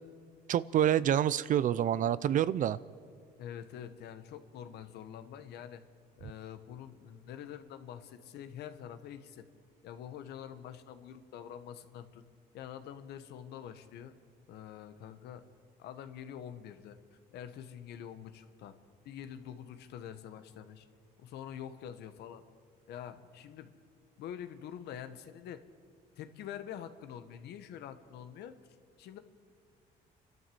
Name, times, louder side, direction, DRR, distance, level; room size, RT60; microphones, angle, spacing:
voice 1, 0.5-2.8, right 10 dB, 50° right, 18 dB, 0.5 m, -27 dB
voice 2, 3.4-5.8 6.2-9.4 9.8-12.2 12.5-14.1 14.5-15.4 15.8-17.0 17.3-18.8 19.0-20.9 21.2-22.4 22.9-23.7 24.2-25.7 26.2-28.6 29.0-29.2, left 9 dB, 75° left, 10 dB, 1.3 m, -46 dB
29.0 x 12.5 x 7.8 m, 2.1 s
cardioid pair, 110°, 17 cm